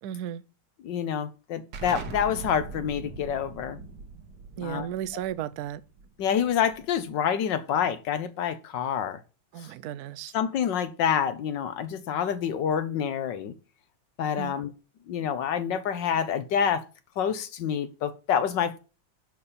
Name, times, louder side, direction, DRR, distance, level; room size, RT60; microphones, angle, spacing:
voice 1, 0.0-0.4 4.6-5.8 9.5-10.3 14.4-14.6, right 11 dB, 80° right, 0.8 m, -34 dB
voice 2, 0.8-3.8 4.6-4.9 6.2-9.2 10.3-13.5 14.2-14.7 15.1-16.8 17.2-18.8, left 8 dB, 65° left, 1.4 m, -27 dB
Explosion, 1.7-7.1, right 4 dB, 60° right, 1.7 m, -41 dB
11.5 x 4.2 x 6.7 m
omnidirectional pair, 2.3 m